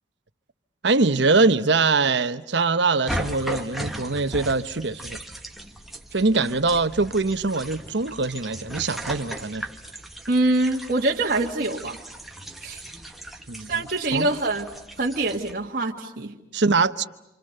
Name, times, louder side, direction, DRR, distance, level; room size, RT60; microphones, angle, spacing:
voice 1, 0.8-5.2 6.1-9.7 13.5-13.7 14.1-14.3 16.5-17.0, right 3 dB, 70° right, 1.0 m, -22 dB
sound 1, 3.1-15.5, equal, ahead, 1.5 m, -37 dB
voice 2, 10.3-12.0 12.6-12.8 13.7-14.7 15.0-16.4, right 2 dB, 45° right, 1.9 m, -24 dB
28.5 x 27.5 x 6.7 m
head